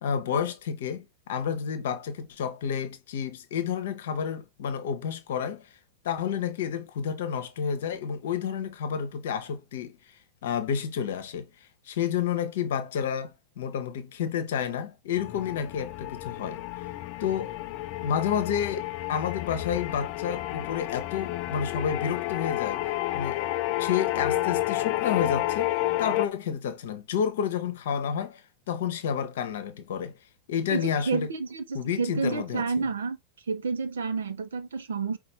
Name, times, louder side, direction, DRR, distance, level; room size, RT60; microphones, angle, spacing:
voice 1, 0.0-5.7 6.0-9.9 10.4-11.5 11.9-16.9 17.2-17.6 18.0-23.5 23.8-30.1 30.5-31.3 31.7-32.6, left 8 dB, 55° left, 0.9 m, -30 dB
sound 1, 15.2-26.3, left 16 dB, 40° left, 0.3 m, -30 dB
voice 2, 30.7-33.2 33.5-35.2, right 4 dB, 65° right, 0.7 m, -30 dB
5.3 x 2.5 x 3.9 m
figure-of-eight pair, 90°, 0 cm